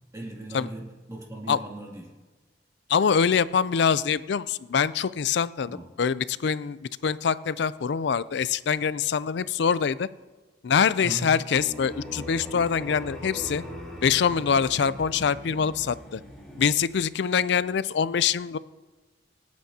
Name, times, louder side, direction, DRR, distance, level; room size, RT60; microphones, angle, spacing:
voice 1, 0.1-2.1 5.7-5.8 11.0-11.4, right 1 dB, 20° right, -3 dB, 2.5 m, -37 dB
voice 2, 2.9-10.1 10.6-13.6 14.0-16.2 16.6-18.6, left 6 dB, 65° left, 17 dB, 0.4 m, -24 dB
sound 1, 11.5-16.7, left 1 dB, 5° left, 3.2 m, -40 dB
26.5 x 9.4 x 2.8 m, 1.3 s
head